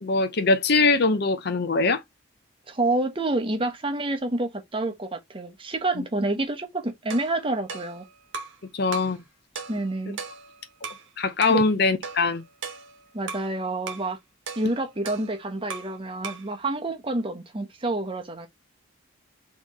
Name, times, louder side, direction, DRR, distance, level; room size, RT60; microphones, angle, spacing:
voice 1, 0.0-2.0 6.0-6.1 8.7-9.2 11.2-12.4, left 3 dB, 55° left, 0.7 m, -22 dB
voice 2, 2.7-8.0 9.7-10.2 11.5-11.6 13.1-14.2 14.6-18.5, right 2 dB, 25° right, 0.9 m, -28 dB
sound 1, 7.1-8.6 8.9-9.2 9.6-11.1 11.4-11.7 12.0-13.5 13.9-14.1 14.5-16.0 16.2-16.5, right 5 dB, 70° right, 1.0 m, -38 dB
4.1 x 3.1 x 4.1 m
head